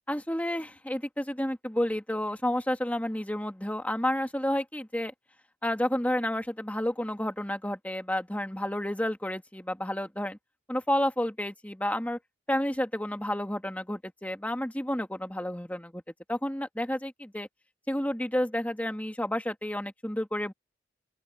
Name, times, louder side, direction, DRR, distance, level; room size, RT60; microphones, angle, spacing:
voice 1, 0.1-5.1 5.6-10.4 10.7-12.2 12.5-16.0 16.3-17.5 17.9-20.5, left 1 dB, 10° left, 1.9 m, -30 dB
open air
head